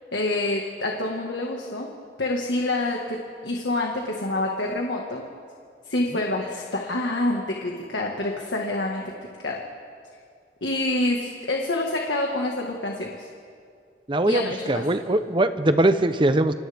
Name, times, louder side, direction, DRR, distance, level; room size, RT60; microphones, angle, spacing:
voice 1, 0.1-1.9 2.2-3.2 3.4-5.2 5.9-9.6 10.6-13.3 14.3-14.8, left 2 dB, 85° left, 0 dB, 1.8 m, -27 dB
voice 2, 14.1-16.5, right 1 dB, 25° right, 10 dB, 0.8 m, -21 dB
29.0 x 25.0 x 3.6 m, 2.2 s
head